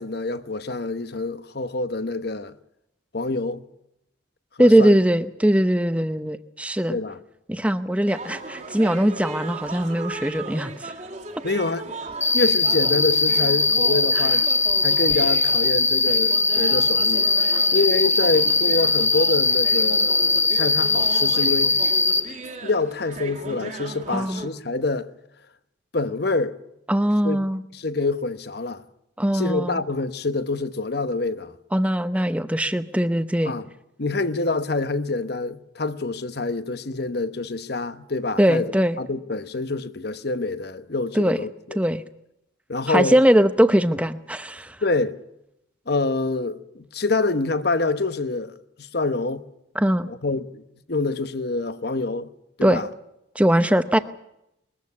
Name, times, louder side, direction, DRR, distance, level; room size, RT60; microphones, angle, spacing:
voice 1, 0.0-2.6 3.1-3.6 4.6-4.9 6.9-7.2 11.4-11.9 12.3-14.4 14.8-17.3 17.7-21.8 22.6-25.1 25.9-26.6 27.2-27.4 27.7-28.8 29.3-31.5 33.4-33.7 34.0-38.7 39.0-41.8 42.7-43.2 44.8-45.2 45.9-49.4 50.0-50.6 50.9-52.3 52.6-52.9, left 3 dB, 50° left, 1.0 m, -26 dB
voice 2, 4.6-7.0 7.5-10.9 24.1-24.4 26.9-27.6 29.2-29.8 31.7-33.5 38.4-39.0 41.1-41.4 41.8-42.0 42.9-44.8 49.8-50.1 52.6-52.8 53.3-54.0, equal, 5° right, 0.7 m, -20 dB
sound 1, 8.1-24.5, right 2 dB, 35° right, 1.9 m, -37 dB
Cricket, 12.2-22.2, left 3 dB, 15° left, 1.3 m, -20 dB
21.5 x 14.0 x 9.5 m
head